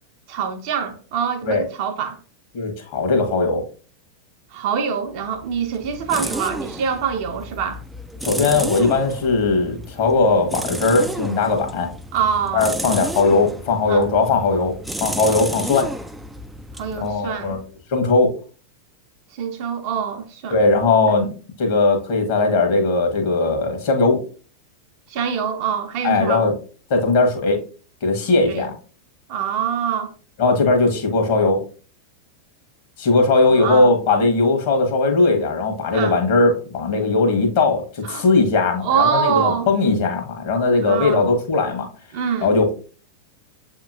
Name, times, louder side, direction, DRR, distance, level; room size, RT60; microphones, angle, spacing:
voice 1, 0.3-2.2 4.5-7.8 12.1-12.7 13.9-14.1 16.8-17.6 19.3-20.6 21.1-21.2 25.1-26.4 28.2-28.7 29.3-30.1 33.5-34.0 35.9-36.2 38.0-38.3 38.8-39.7 40.9-41.2 42.1-42.6, right 7 dB, 45° right, 0.6 m, -24 dB
voice 2, 2.5-3.6 8.2-11.9 12.5-14.7 15.0-15.9 17.0-17.6 17.9-18.3 20.5-21.3 21.6-24.2 26.0-26.5 26.9-27.6 28.0-28.7 30.4-31.6 33.0-41.8 42.4-42.7, left 3 dB, 50° left, 1.2 m, -18 dB
sound 1, 5.2-17.8, right 1 dB, 5° right, 0.3 m, -32 dB
7.2 x 2.9 x 2.5 m
figure-of-eight pair, 90°, 0 cm